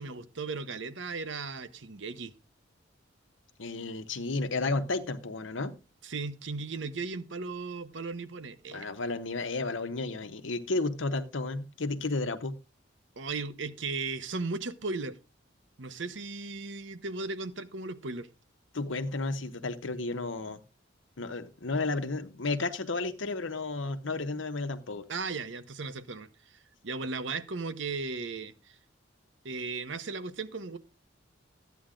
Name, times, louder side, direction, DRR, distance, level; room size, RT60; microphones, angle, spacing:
voice 1, 0.0-2.3 6.0-8.9 13.2-15.2 15.8-18.3 25.1-28.8 29.4-30.8, right 3 dB, 65° right, 0.9 m, -36 dB
voice 2, 3.6-5.8 8.7-12.5 18.7-20.6 21.2-25.1, left 3 dB, 75° left, 1.1 m, -32 dB
13.0 x 9.4 x 3.8 m
head